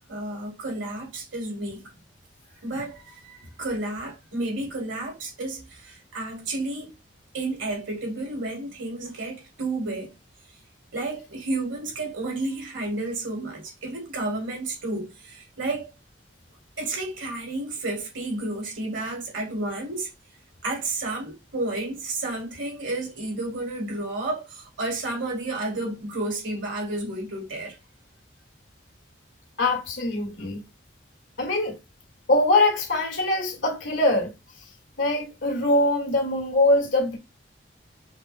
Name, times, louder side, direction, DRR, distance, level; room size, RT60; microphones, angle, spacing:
voice 1, 0.1-1.9 2.6-6.9 7.3-10.1 10.9-15.9 16.8-20.1 20.6-27.8, right 2 dB, 90° right, 2.6 m, -31 dB
voice 2, 29.6-30.6 31.4-31.8 32.3-34.3 35.0-37.2, left 2 dB, 75° left, 1.8 m, -22 dB
5.1 x 2.2 x 4.2 m
head